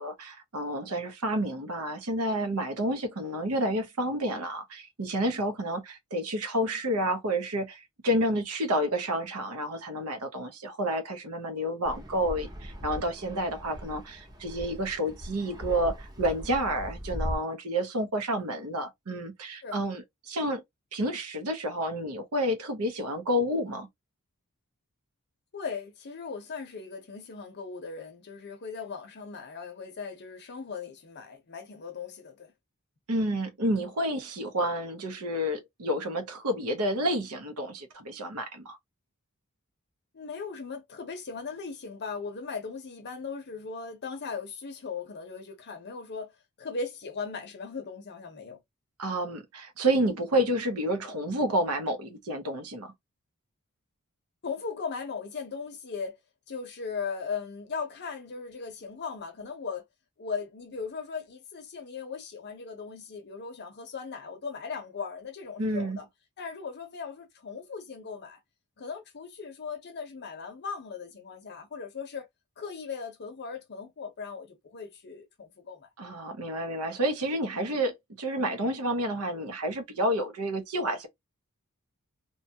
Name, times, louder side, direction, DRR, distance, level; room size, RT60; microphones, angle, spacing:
voice 1, 0.0-20.6 20.9-23.9 33.1-38.8 49.0-52.9 65.6-66.0 76.0-81.1, equal, 80° right, 0.8 m, -30 dB
Fixed-wing aircraft airplane, 11.8-17.3, equal, 20° right, 0.6 m, -39 dB
voice 2, 25.5-32.5 40.1-48.6 54.4-56.2 56.5-59.8 60.2-66.1 66.4-68.4 68.8-72.3 72.6-75.9 77.5-77.7, left 5 dB, 50° left, 0.6 m, -38 dB
2.8 x 2.3 x 2.7 m
head